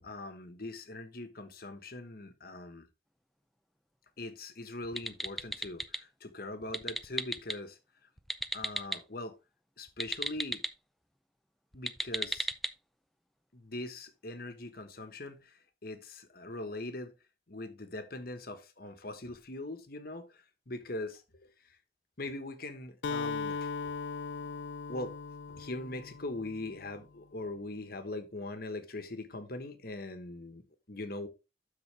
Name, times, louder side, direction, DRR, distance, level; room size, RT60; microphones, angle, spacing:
voice 1, 0.0-2.9 4.2-7.8 8.5-9.4 9.8-10.6 11.7-12.5 13.5-17.1 17.5-21.8 22.2-23.9 24.9-25.1 25.5-31.3, left 2 dB, 55° left, 1.3 m, -41 dB
sound 1, 4.8-6.0 6.6-7.6 8.2-9.0 9.9-10.7 11.7-12.7, equal, ahead, 0.5 m, -35 dB
Acoustic guitar, 23.0-26.9, left 4 dB, 75° left, 0.5 m, -38 dB
12.0 x 4.1 x 3.4 m
head